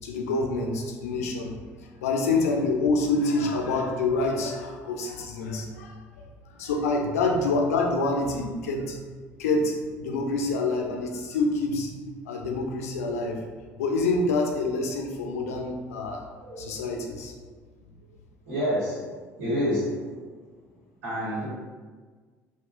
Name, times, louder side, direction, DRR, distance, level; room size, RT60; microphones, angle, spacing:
voice 1, 0.0-1.5 2.0-6.0 6.6-9.0 9.4-11.9 12.3-13.4 13.8-16.2 16.6-17.3, left 3 dB, 75° left, 2 dB, 0.4 m, -26 dB
voice 2, 18.5-19.1 19.4-20.0 21.0-21.5, equal, 75° right, -9 dB, 1.3 m, -27 dB
3.6 x 2.1 x 2.4 m, 1.4 s
figure-of-eight pair, 55°, 8 cm